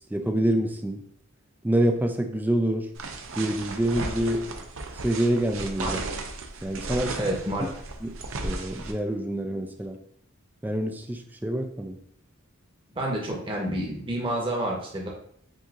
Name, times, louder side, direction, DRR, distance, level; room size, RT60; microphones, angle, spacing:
voice 1, 0.1-1.0 1.6-2.9 3.4-4.4 5.0-6.0 6.6-7.2 8.0-8.1 8.4-10.0 10.6-12.0, right 1 dB, 10° right, 4 dB, 0.4 m, -26 dB
sound 1, 3.0-8.9, right 3 dB, 70° right, 0.6 m, -35 dB
voice 2, 7.2-7.7 12.9-15.1, right 1 dB, 25° right, -2 dB, 1.1 m, -29 dB
7.4 x 2.8 x 2.5 m, 0.65 s
head